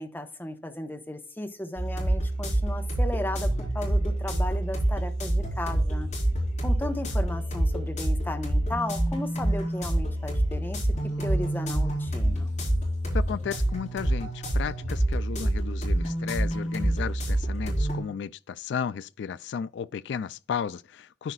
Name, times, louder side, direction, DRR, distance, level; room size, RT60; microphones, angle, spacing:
voice 1, 0.0-3.5 3.7-6.1 6.6-10.8 11.2-12.5, left 1 dB, 10° left, 1.0 m, -35 dB
sound 1, 1.8-18.0, right 1 dB, 40° left, 4.0 m, -27 dB
voice 2, 13.1-21.3, left 7 dB, 70° left, 0.3 m, -34 dB
13.5 x 4.9 x 2.3 m
head